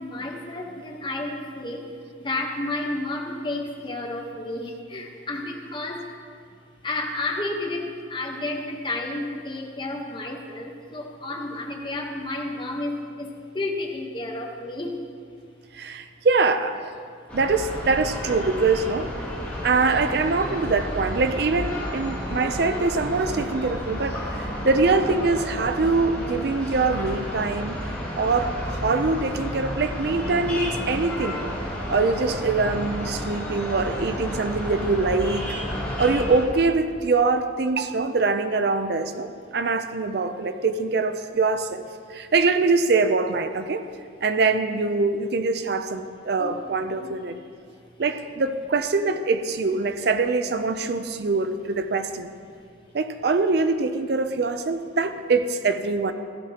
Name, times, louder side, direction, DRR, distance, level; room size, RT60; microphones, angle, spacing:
voice 1, 0.0-1.8 2.2-6.0 6.8-15.0 46.4-47.1, left 2 dB, 25° left, 1 dB, 1.0 m, -31 dB
voice 2, 15.7-17.0 17.3-19.1 19.6-27.8 28.1-31.5 31.9-35.4 36.0-41.8 42.1-43.9 44.2-47.4 48.0-52.3 52.9-56.1, right 3 dB, 55° right, 9 dB, 0.4 m, -23 dB
sound 1, 17.3-36.4, equal, 10° left, 2.8 m, -31 dB
15.5 x 11.5 x 2.9 m, 2.2 s
head